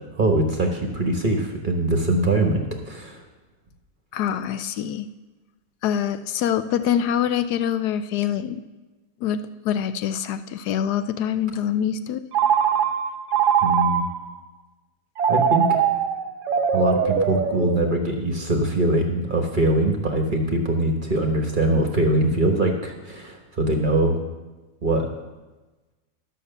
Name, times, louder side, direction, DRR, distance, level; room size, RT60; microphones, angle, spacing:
voice 1, 0.2-3.2 13.6-14.1 15.3-15.9 16.7-24.2 24.8-25.1, right 1 dB, 35° right, 2 dB, 1.2 m, -22 dB
voice 2, 4.1-5.0 5.8-8.6 9.2-9.4 9.6-12.2, left 9 dB, 80° left, 11 dB, 1.1 m, -25 dB
Telephone, 12.3-14.3 15.2-18.2, right 7 dB, 80° right, 1.4 m, -22 dB
11.5 x 6.5 x 6.7 m, 1.2 s
omnidirectional pair, 1.7 m